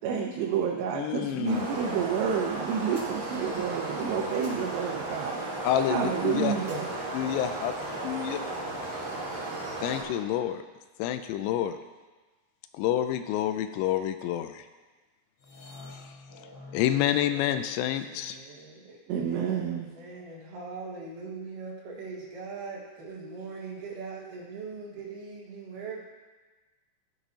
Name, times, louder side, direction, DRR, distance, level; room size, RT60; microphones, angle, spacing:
voice 1, 0.0-5.4 5.9-6.9 19.1-19.9, right 7 dB, 85° right, -1 dB, 3.0 m, -29 dB
voice 2, 0.9-1.7 5.6-6.5 7.1-7.7 8.0-8.4 9.8-10.6 11.0-11.8 12.7-14.6 16.7-18.4, left 11 dB, 85° left, 9 dB, 2.7 m, -28 dB
sound 1, 1.4-10.0, right 2 dB, 40° right, 1.9 m, -35 dB
voice 3, 1.5-2.6 6.3-6.8 18.1-26.0, right 4 dB, 60° right, -5 dB, 2.9 m, -41 dB
sound 2, 15.4-18.5, left 3 dB, 70° left, 4.9 m, -48 dB
15.0 x 6.0 x 2.8 m, 1.3 s
omnidirectional pair, 5.0 m